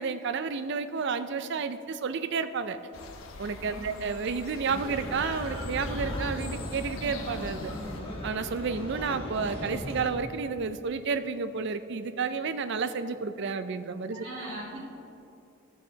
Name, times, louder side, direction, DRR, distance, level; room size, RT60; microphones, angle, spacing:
voice 1, 0.0-2.8 3.4-7.7 8.2-14.3, right 5 dB, 55° right, 11 dB, 0.4 m, -31 dB
sound 1, 2.9-8.0, left 2 dB, 70° left, 0.8 m, -43 dB
sound 2, 4.6-10.1, equal, 25° left, 1.2 m, -37 dB
voice 2, 14.1-14.8, right 1 dB, 85° right, -8 dB, 2.4 m, -39 dB
14.0 x 5.9 x 4.0 m, 2.8 s
head